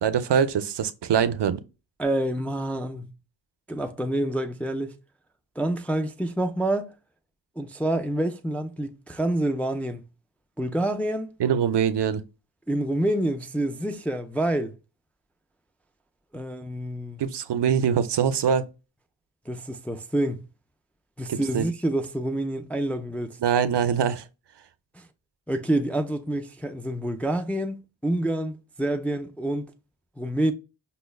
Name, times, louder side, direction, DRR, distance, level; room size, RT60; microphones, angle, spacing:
voice 1, 0.0-1.6 11.4-12.2 17.2-18.7 21.3-21.6 23.4-24.2, right 8 dB, 65° right, 0.5 m, -23 dB
voice 2, 2.0-3.1 3.7-5.0 5.6-6.9 7.6-10.0 10.6-11.3 12.7-14.7 16.3-17.2 19.5-20.5 21.2-23.4 25.0-25.1 25.5-29.7 30.2-30.5, right 1 dB, 5° left, 0.3 m, -27 dB
5.5 x 2.0 x 2.2 m
wide cardioid pair, 55°, 46 cm